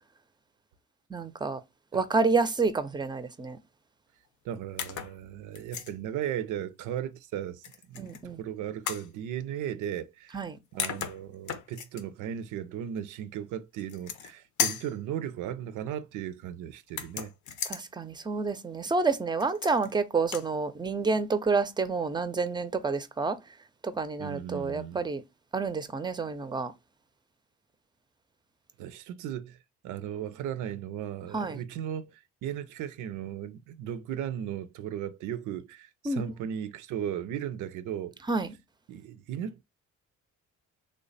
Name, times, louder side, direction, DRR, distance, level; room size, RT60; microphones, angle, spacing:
voice 1, 1.1-1.6 1.9-3.6 8.0-8.4 10.3-10.6 17.7-23.4 23.8-25.2 25.5-26.7 31.3-31.6 36.1-36.2 38.3-38.5, right 4 dB, 15° right, 0.5 m, -29 dB
voice 2, 4.4-10.4 10.7-17.3 24.2-25.0 28.8-29.6 29.8-38.1 38.9-39.6, right 10 dB, 85° right, 0.5 m, -36 dB
sound 1, 4.8-5.2 5.5-5.9 7.6-8.2 8.9-9.1 10.4-10.5 10.8-12.0 13.8-14.3 14.6-14.9 16.9-17.8 19.4-19.9 20.2-20.5, left 8 dB, 75° left, 0.6 m, -34 dB
3.3 x 2.1 x 3.9 m
cardioid pair, 90°, 30 cm